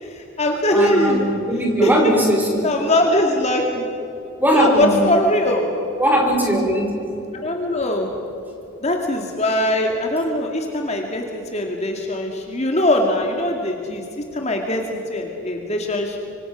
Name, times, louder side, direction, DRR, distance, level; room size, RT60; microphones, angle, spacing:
voice 1, 0.0-1.3 1.8-1.9 2.6-3.9 4.5-5.7 7.3-8.1 8.8-16.2, left 1 dB, 30° left, 2 dB, 2.2 m, -21 dB
voice 2, 0.7-2.6 4.4-5.0 6.0-6.9, equal, 10° right, 1 dB, 4.8 m, -19 dB
25.5 x 25.5 x 6.3 m, 2.9 s
head